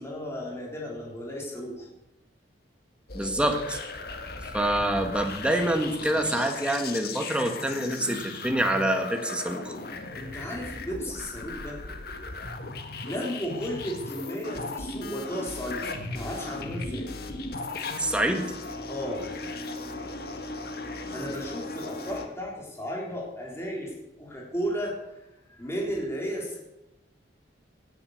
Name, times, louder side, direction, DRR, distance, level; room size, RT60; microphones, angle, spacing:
voice 1, 0.0-1.9 10.2-11.8 13.0-17.1 18.9-19.3 21.1-25.1 25.5-26.6, equal, 15° left, -2 dB, 4.0 m, -34 dB
sound 1, 3.1-22.3, left 3 dB, 60° left, 1.7 m, -37 dB
voice 2, 3.1-3.8 4.5-9.7 18.0-18.5, right 1 dB, 5° right, 4 dB, 1.8 m, -26 dB
17.0 x 10.0 x 6.7 m, 0.91 s
head